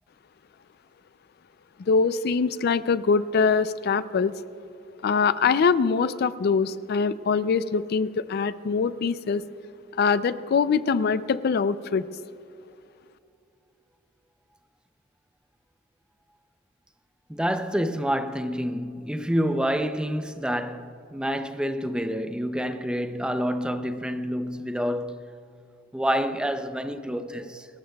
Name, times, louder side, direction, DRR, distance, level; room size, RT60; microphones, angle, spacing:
voice 1, 1.8-4.3 5.0-9.4 10.0-12.1, left 5 dB, 55° left, 0.4 m, -23 dB
voice 2, 17.3-25.2 25.9-27.7, equal, 5° right, 0.5 m, -28 dB
27.0 x 13.0 x 2.3 m
head